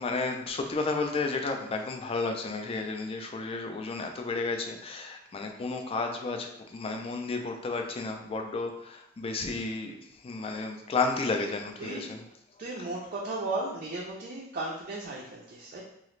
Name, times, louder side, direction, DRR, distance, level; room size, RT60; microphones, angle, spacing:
voice 1, 0.0-10.0 10.2-12.2, left 3 dB, 30° left, 4 dB, 0.3 m, -32 dB
voice 2, 11.8-12.1 12.6-15.8, right 2 dB, 45° right, -3 dB, 0.4 m, -35 dB
2.9 x 2.4 x 3.1 m, 0.78 s
head